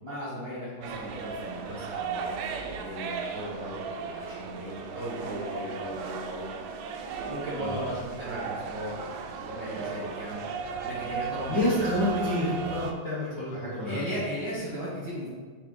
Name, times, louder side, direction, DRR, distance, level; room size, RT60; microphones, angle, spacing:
voice 1, 0.0-2.4 2.7-6.4 7.3-10.4 10.8-11.6 13.8-15.3, equal, 65° right, -7 dB, 1.1 m, -37 dB
sound 1, 0.8-12.9, right 5 dB, 80° right, 1.7 m, -36 dB
voice 2, 11.5-14.1, left 1 dB, 55° left, -9 dB, 1.2 m, -28 dB
7.6 x 3.3 x 3.9 m, 1.5 s
omnidirectional pair, 3.9 m